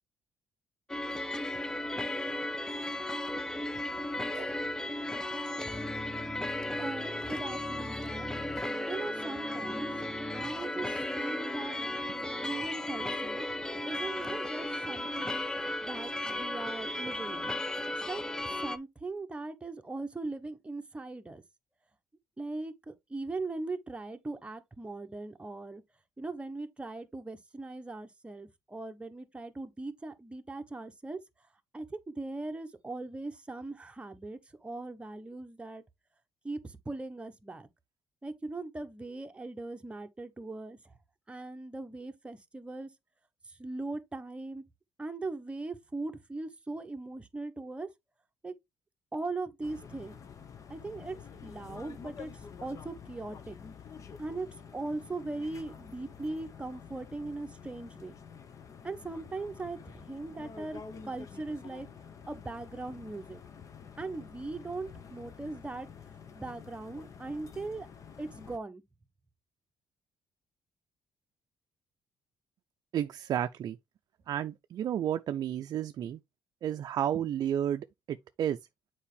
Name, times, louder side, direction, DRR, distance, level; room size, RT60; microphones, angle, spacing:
sound 1, 0.9-18.8, left 1 dB, 10° left, 0.6 m, -35 dB
voice 1, 6.8-8.3 8.9-9.9 10.3-11.8 12.4-13.5 13.9-17.5 18.1-21.4 22.4-25.8 26.2-31.2 31.7-35.8 36.4-37.7 38.2-40.9 41.3-42.9 43.4-44.6 45.0-47.9 48.4-48.5 49.1-50.2 50.7-51.2 51.4-53.6 54.2-58.2 58.8-61.9 62.3-63.4 64.0-65.9 66.3-67.9 68.2-68.8, right 3 dB, 15° right, 1.1 m, -39 dB
sound 2, 49.6-68.6, left 6 dB, 45° left, 1.0 m, -49 dB
voice 2, 72.9-73.8 74.3-76.2 76.6-78.6, right 10 dB, 60° right, 0.4 m, -32 dB
7.2 x 4.7 x 3.3 m
cardioid pair, 100°, 7 cm